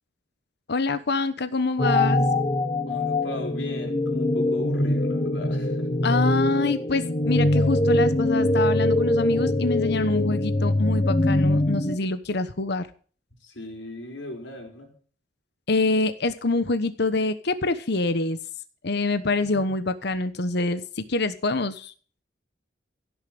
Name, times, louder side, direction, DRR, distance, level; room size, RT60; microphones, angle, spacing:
voice 1, 0.7-2.3 6.0-12.9 15.7-18.4 18.8-21.9, left 3 dB, 65° left, 12 dB, 1.1 m, -25 dB
sound 1, 1.8-12.0, left 1 dB, 35° left, 1.3 m, -23 dB
voice 2, 2.8-5.9 13.4-14.9 19.4-19.5, left 1 dB, 80° left, 2 dB, 4.7 m, -37 dB
16.5 x 7.2 x 7.8 m, 0.43 s
head